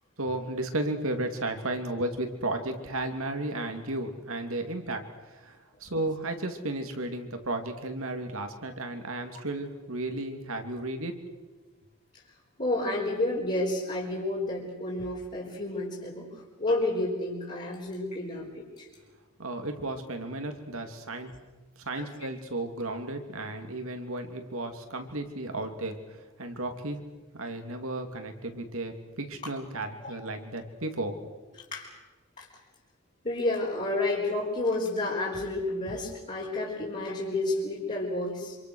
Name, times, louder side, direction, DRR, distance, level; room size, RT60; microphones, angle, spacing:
voice 1, 0.2-11.1 19.4-21.3 21.8-27.0 27.3-31.2 31.5-31.6, right 2 dB, 65° right, 6 dB, 3.0 m, -34 dB
voice 2, 12.6-16.3 16.6-18.9 22.0-22.1 29.4-29.5 30.0-30.1 31.7-31.9 32.4-32.5 33.2-38.6, left 2 dB, 35° left, -5 dB, 4.3 m, -30 dB
27.0 x 26.0 x 6.5 m, 1.2 s
head